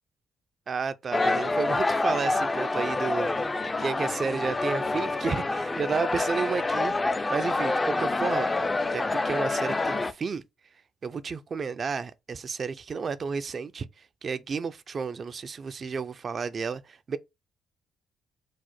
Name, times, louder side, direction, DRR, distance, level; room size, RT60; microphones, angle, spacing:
voice 1, 0.7-3.3 3.8-8.5 8.9-10.4 11.0-17.2, right 5 dB, 45° right, 0.4 m, -32 dB
sound 1, 1.1-10.1, left 2 dB, 20° left, 0.4 m, -27 dB
4.7 x 2.1 x 4.2 m
cardioid pair, 90°, 0 cm